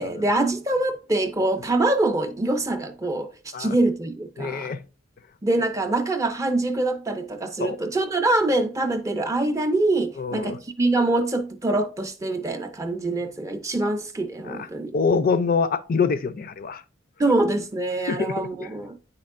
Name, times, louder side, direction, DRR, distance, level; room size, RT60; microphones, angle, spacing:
voice 1, 0.0-4.7 5.4-14.9 17.2-19.0, right 2 dB, 15° right, 0.4 m, -24 dB
voice 2, 4.4-4.8 7.6-7.8 10.2-10.6 14.4-14.7 14.9-16.8 18.1-18.7, left 5 dB, 50° left, 0.4 m, -25 dB
9.1 x 4.3 x 2.5 m
head